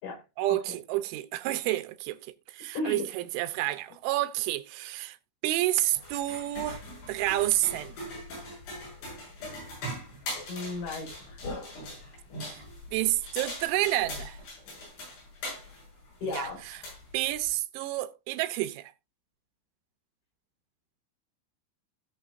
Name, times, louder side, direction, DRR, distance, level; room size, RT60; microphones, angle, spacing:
voice 1, 0.4-2.2 2.5-5.2 5.4-6.8 7.1-8.1 12.4-12.6 12.9-14.4 16.2-16.8 17.1-18.9, right 15 dB, 85° right, 3.1 m, -29 dB
voice 2, 2.7-3.1 10.5-11.1 16.2-16.6, left 2 dB, 85° left, 7.5 m, -33 dB
sound 1, 5.9-17.6, left 1 dB, 70° left, 9.1 m, -41 dB
17.5 x 6.3 x 2.6 m
omnidirectional pair, 5.5 m